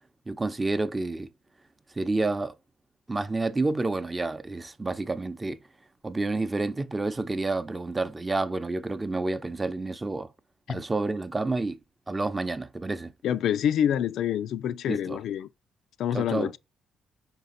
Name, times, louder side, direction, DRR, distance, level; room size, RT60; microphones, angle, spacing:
voice 1, 0.3-1.3 2.0-2.6 3.1-5.6 6.0-10.3 10.7-11.8 12.1-13.1 14.9-15.2 16.1-16.6, right 3 dB, 20° right, 0.7 m, -29 dB
voice 2, 13.2-15.5 16.0-16.6, left 9 dB, 75° left, 0.4 m, -27 dB
5.7 x 4.0 x 4.0 m
cardioid pair, 90°, 0 cm